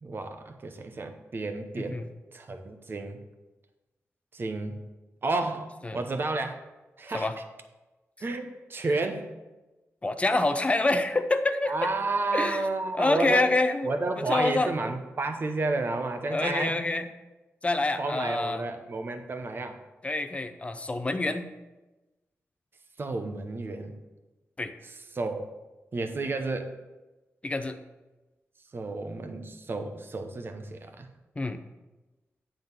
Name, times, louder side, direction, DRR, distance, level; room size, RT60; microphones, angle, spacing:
voice 1, 0.0-2.0 2.3-3.2 4.3-4.8 5.2-6.5 7.0-7.3 8.2-9.3 11.7-13.5 13.8-16.8 18.0-19.8 23.0-23.9 25.1-25.5 25.9-26.7 28.7-31.1, right 3 dB, 45° right, 6 dB, 0.9 m, -31 dB
voice 2, 1.7-2.1 5.8-6.0 7.1-7.3 8.9-9.0 10.0-11.7 12.3-12.6 12.9-13.9 14.2-14.7 16.3-17.1 17.6-18.7 20.0-21.5 24.6-24.7 27.4-27.8 31.4-31.6, left 2 dB, 25° left, 9 dB, 0.6 m, -26 dB
9.2 x 3.8 x 6.6 m, 1.1 s
wide cardioid pair, 100°, 5 cm